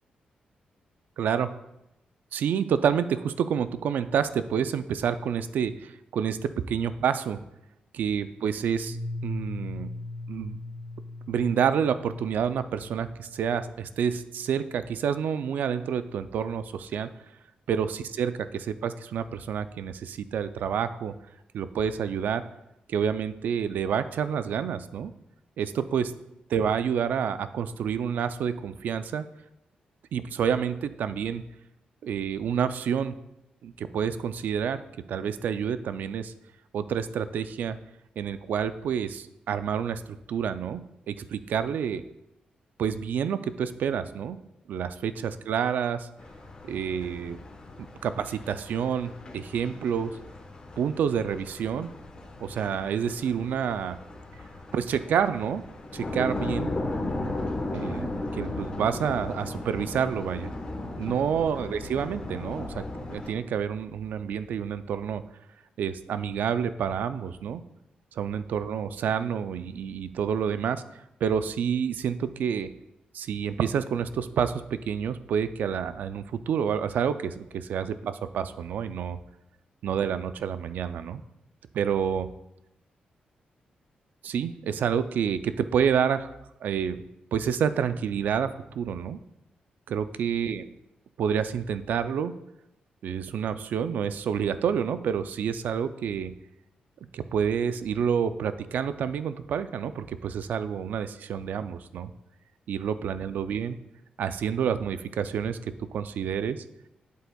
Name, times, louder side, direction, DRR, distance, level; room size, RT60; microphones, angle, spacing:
voice 1, 1.2-1.5 2.3-7.4 7.9-9.0 9.2-9.9 10.3-10.6 11.3-17.1 17.7-21.1 21.5-22.4 22.9-25.1 25.6-26.1 26.5-29.3 30.1-31.4 32.0-33.2 33.6-34.8 35.1-36.3 36.7-37.8 38.2-42.0 42.8-44.4 44.7-46.1 46.6-47.4 48.0-50.1 50.8-51.9 52.4-54.0 54.7-55.6 55.9-56.7 57.7-60.5 61.0-62.8 63.1-65.2 65.8-67.6 68.2-70.8 71.2-72.7 73.1-79.2 79.8-81.2 81.7-82.3 84.2-86.3 86.6-87.0 87.3-89.2 89.9-90.7 91.2-92.3 93.0-96.3 97.1-102.1 102.7-103.8 104.2-106.6, right 7 dB, 80° right, 12 dB, 0.4 m, -28 dB
Piano, 8.9-14.5, left 2 dB, 15° left, 1.9 m, -39 dB
sound 1, 46.2-63.3, left 2 dB, 30° left, 1.0 m, -36 dB
8.2 x 7.8 x 2.3 m, 0.88 s
wide cardioid pair, 155°, 3 cm